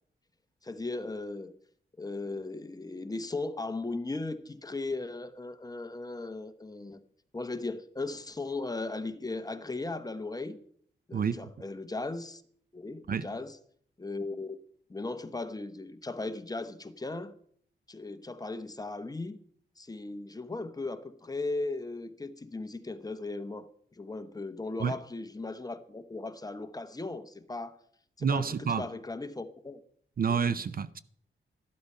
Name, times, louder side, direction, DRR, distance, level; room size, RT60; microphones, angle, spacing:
voice 1, 0.6-1.5 2.0-7.0 7.3-10.6 11.1-12.4 12.7-13.6 14.0-14.6 14.9-17.3 17.9-19.4 19.8-27.8 28.2-29.8 30.3-30.5, left 3 dB, 20° left, 0.8 m, -37 dB
voice 2, 11.1-11.5 13.1-13.3 24.8-25.0 28.2-28.9 30.2-31.0, right 6 dB, 45° right, 0.5 m, -29 dB
13.5 x 12.0 x 5.5 m
wide cardioid pair, 140°, 20 cm